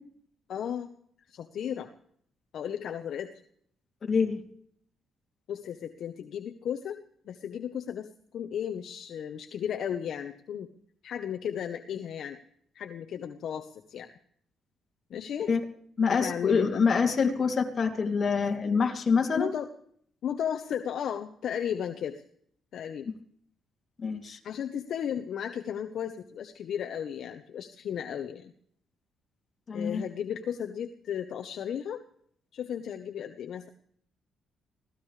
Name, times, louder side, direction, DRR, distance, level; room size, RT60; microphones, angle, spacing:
voice 1, 0.5-0.9 1.3-1.9 2.5-3.3 5.5-10.7 11.0-12.4 12.7-14.1 15.1-15.5 16.1-16.8 19.3-19.7 20.2-22.2 22.7-23.1 24.4-28.5 29.7-32.0 32.5-33.7, left 9 dB, 65° left, 6 dB, 1.1 m, -34 dB
voice 2, 4.1-4.4 15.5-15.6 16.0-19.5 24.0-24.4 29.7-30.0, left 5 dB, 45° left, 4 dB, 2.9 m, -26 dB
24.5 x 17.5 x 3.4 m, 0.64 s
cardioid pair, 90°, 0 cm